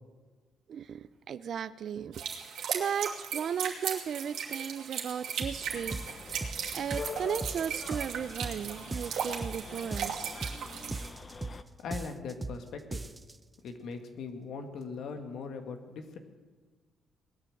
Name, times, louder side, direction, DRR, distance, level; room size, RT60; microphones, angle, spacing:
voice 1, 0.7-2.2 2.7-6.0 6.7-11.0, right 8 dB, 60° right, 16 dB, 0.6 m, -36 dB
sound 1, 2.1-11.1, right 7 dB, 75° right, 2.7 m, -37 dB
sound 2, 5.4-5.6 5.9-6.6 6.9-7.6 7.9-8.6 8.9-9.6 9.9-10.6 10.9-11.6 11.9-12.6 12.9-13.4, right 3 dB, 20° right, 0.7 m, -38 dB
sound 3, 5.6-11.6, left 4 dB, 35° left, 1.0 m, -45 dB
voice 2, 11.8-13.0 13.6-16.2, left 4 dB, 75° left, 6 dB, 2.0 m, -40 dB
19.0 x 9.7 x 7.9 m, 1.4 s
cardioid pair, 90°, 0 cm